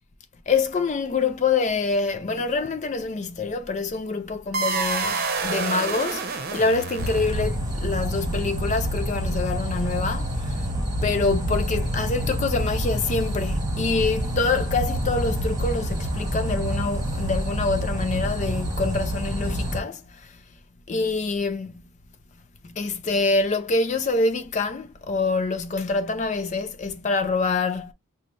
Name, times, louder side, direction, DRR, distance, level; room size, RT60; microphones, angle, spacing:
voice 1, 0.5-10.7 11.0-20.4 20.9-21.7 22.6-27.9, left 3 dB, 30° left, 0.3 m, -26 dB
sound 1, 4.5-7.7, right 4 dB, 45° right, 0.8 m, -28 dB
sound 2, 7.0-19.8, equal, 15° right, 1.1 m, -27 dB
5.3 x 2.1 x 3.0 m
head